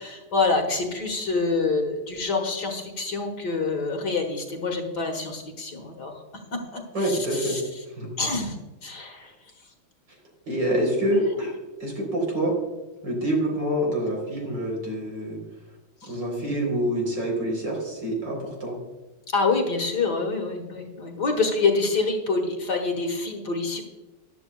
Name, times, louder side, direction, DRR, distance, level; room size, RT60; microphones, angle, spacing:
voice 1, 0.0-6.1 6.5-7.6 8.2-8.6 8.8-9.3 16.0-16.2 19.3-23.8, left 3 dB, 55° left, 3 dB, 1.9 m, -26 dB
voice 2, 6.9-7.6 7.9-8.1 10.5-12.6 13.0-15.4 16.1-18.8, right 1 dB, 55° right, -1 dB, 4.5 m, -26 dB
14.0 x 11.0 x 2.3 m, 1.1 s
omnidirectional pair, 2.3 m